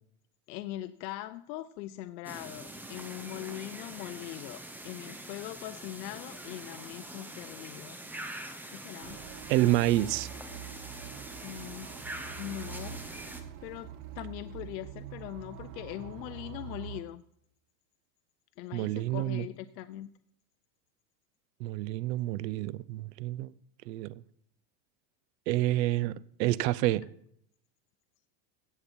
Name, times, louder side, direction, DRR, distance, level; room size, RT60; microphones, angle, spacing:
voice 1, 0.5-7.9 8.7-9.2 11.4-12.0 12.4-13.1 13.6-17.2 18.6-20.1, left 14 dB, 85° left, 0.7 m, -41 dB
sound 1, 2.2-13.4, right 1 dB, 5° right, 0.6 m, -44 dB
sound 2, 9.0-17.0, right 8 dB, 50° right, 1.2 m, -45 dB
voice 2, 9.5-10.3 18.7-19.4 21.6-23.5 23.9-24.1 25.5-27.0, right 16 dB, 80° right, 0.7 m, -28 dB
16.0 x 7.0 x 4.4 m
supercardioid pair, 150°, 50 cm